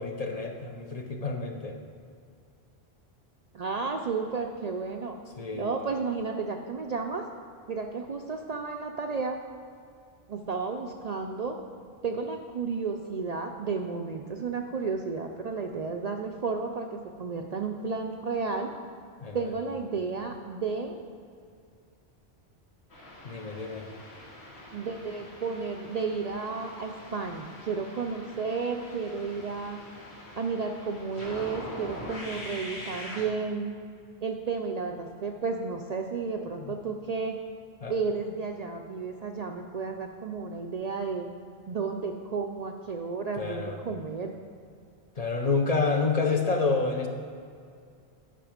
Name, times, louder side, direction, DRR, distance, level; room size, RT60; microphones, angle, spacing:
voice 1, 0.0-1.8 5.4-5.7 19.2-19.4 23.2-23.9 36.6-36.7 37.8-37.9 43.3-43.8 45.2-47.1, left 4 dB, 45° left, 3 dB, 0.7 m, -28 dB
voice 2, 3.5-5.2 5.5-7.3 7.7-9.4 10.3-11.6 12.0-18.7 19.3-21.0 24.7-29.8 30.4-33.7 34.2-37.4 37.9-41.3 41.7-44.3, right 4 dB, 50° right, 3 dB, 0.5 m, -32 dB
sound 1, 22.9-33.2, left 1 dB, 85° left, 2.4 m, -44 dB
10.0 x 6.0 x 5.0 m, 2.3 s
omnidirectional pair, 1.1 m